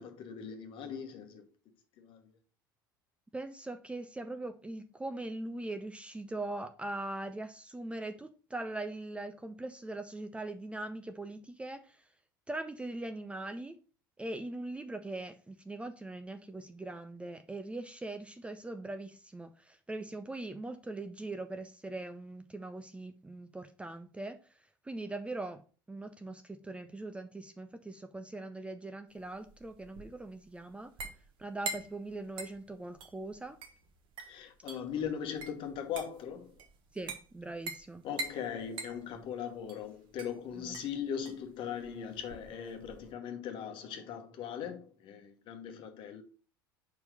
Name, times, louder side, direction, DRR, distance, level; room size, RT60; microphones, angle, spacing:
voice 1, 0.0-1.4 2.0-2.2 34.2-36.5 38.0-46.2, left 8 dB, 45° left, 1.3 m, -39 dB
voice 2, 3.3-12.0 12.5-13.8 14.2-24.4 24.8-25.6 25.9-30.9 31.4-33.6 36.9-38.0 40.6-40.8, right 2 dB, 10° right, 0.6 m, -41 dB
sound 1, 29.2-43.1, right 2 dB, 45° right, 1.2 m, -45 dB
5.3 x 4.5 x 5.0 m
figure-of-eight pair, 70°, 12 cm